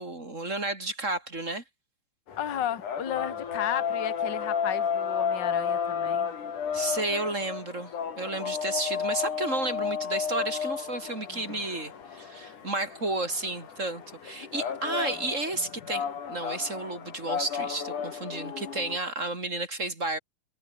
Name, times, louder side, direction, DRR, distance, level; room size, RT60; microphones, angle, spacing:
voice 1, 0.0-1.6 6.7-20.2, right 2 dB, 20° right, 3.8 m, -32 dB
sound 1, 2.3-19.0, left 7 dB, 65° left, 4.5 m, -33 dB
voice 2, 2.4-6.3 11.3-11.4, left 10 dB, 35° left, 2.4 m, -33 dB
omnidirectional pair, 3.9 m